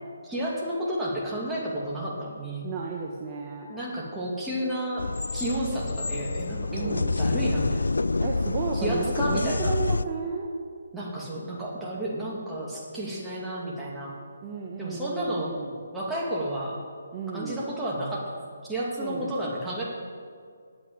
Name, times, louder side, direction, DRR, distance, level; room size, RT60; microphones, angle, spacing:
voice 1, 0.2-2.7 3.7-5.1 5.3-7.8 8.7-9.7 10.9-14.2 14.8-15.6 15.9-16.8 17.3-18.4 18.6-19.8, right 1 dB, 5° right, -7 dB, 2.4 m, -31 dB
voice 2, 2.6-3.7 6.7-7.2 8.2-10.7 14.4-15.8 17.1-17.7 19.0-19.7, right 5 dB, 30° right, -1 dB, 1.1 m, -34 dB
sound 1, 5.0-10.0, left 3 dB, 85° left, 0.3 m, -27 dB
8.6 x 7.8 x 8.9 m, 2.2 s
figure-of-eight pair, 150°, 0 cm